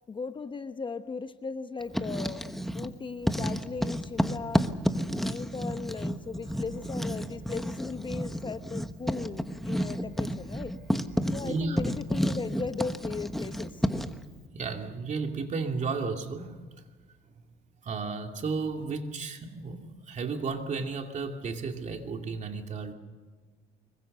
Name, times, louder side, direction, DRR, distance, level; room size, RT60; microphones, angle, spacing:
voice 1, 0.1-2.4 2.7-4.7 5.2-10.7 11.3-13.8, left 4 dB, 30° left, 10 dB, 1.0 m, -37 dB
Writing, 1.8-2.9 3.2-14.2, equal, ahead, 1.2 m, -31 dB
sound 1, 6.4-17.8, right 4 dB, 65° right, 3.6 m, -52 dB
voice 2, 11.4-11.8 14.5-16.6 17.8-22.9, right 4 dB, 45° right, 4 dB, 2.6 m, -33 dB
25.0 x 22.5 x 6.7 m, 1.4 s
cardioid pair, 110°, 17 cm